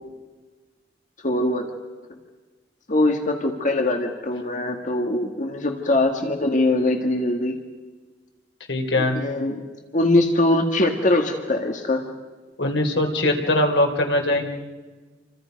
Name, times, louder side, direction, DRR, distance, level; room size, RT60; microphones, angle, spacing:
voice 1, 1.2-1.7 2.9-7.6 9.1-9.6 9.9-12.1, left 2 dB, 45° left, 4 dB, 1.8 m, -22 dB
voice 2, 8.7-9.2 12.6-14.4, left 1 dB, 80° left, 2 dB, 3.4 m, -21 dB
29.0 x 25.0 x 5.3 m, 1.3 s
head